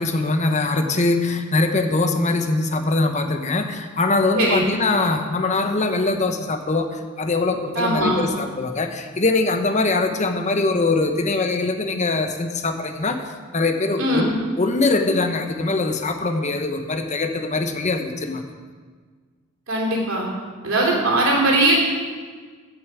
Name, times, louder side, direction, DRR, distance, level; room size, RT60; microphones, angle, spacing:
voice 1, 0.0-6.9 7.2-13.2 13.5-18.4, left 3 dB, 35° left, 6 dB, 0.9 m, -22 dB
voice 2, 7.7-8.2 14.0-14.3 19.7-20.2 20.6-21.7, right 1 dB, 80° right, -2 dB, 3.1 m, -20 dB
16.0 x 7.0 x 4.8 m, 1.5 s
head